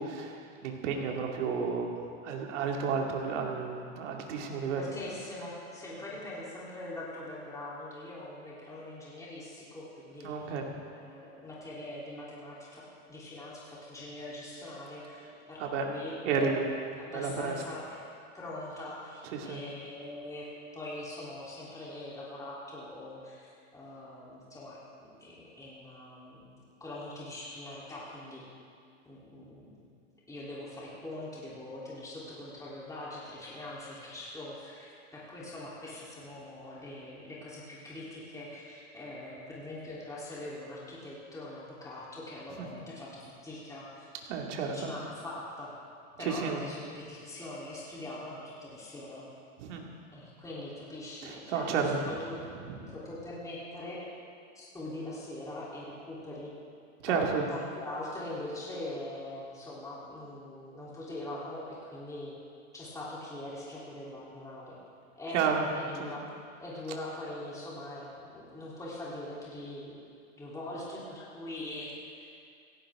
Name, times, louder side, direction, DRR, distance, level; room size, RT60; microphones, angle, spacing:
voice 1, 0.0-1.9 2.2-4.9 10.2-10.7 15.6-15.9 16.2-16.8 17.1-17.5 19.3-19.6 42.6-42.7 44.3-44.9 46.2-46.6 49.6-49.9 51.2-52.0 52.6-52.9 57.0-57.5 65.3-65.7 66.0-66.2, right 5 dB, 70° right, 1 dB, 2.5 m, -32 dB
voice 2, 4.8-10.3 10.9-16.6 17.0-18.0 18.3-28.5 29.0-29.8 30.3-44.1 44.7-45.7 46.2-49.3 50.1-51.7 52.0-52.4 52.9-54.1 54.6-56.5 57.1-57.2 57.5-62.4 62.7-64.8 65.2-66.2 66.6-70.0 70.4-72.3, left 1 dB, 10° left, -7 dB, 3.6 m, -42 dB
17.0 x 15.5 x 3.8 m, 2.3 s
supercardioid pair, 130°, 37 cm